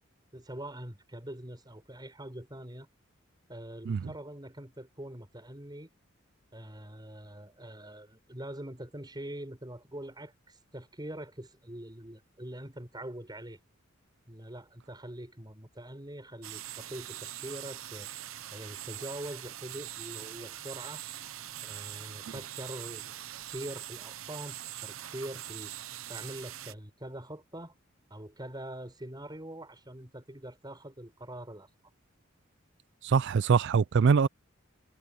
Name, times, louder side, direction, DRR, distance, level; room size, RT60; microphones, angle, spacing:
voice 1, 0.3-2.9 3.5-5.9 6.5-13.6 14.3-18.1 18.5-21.0 21.6-23.2 23.5-25.7 26.1-27.7 28.1-31.7, right 1 dB, 20° right, 6.6 m, -43 dB
sound 1, 16.4-26.7, right 12 dB, 85° right, 0.8 m, -42 dB
voice 2, 33.0-34.3, right 5 dB, 60° right, 0.4 m, -23 dB
head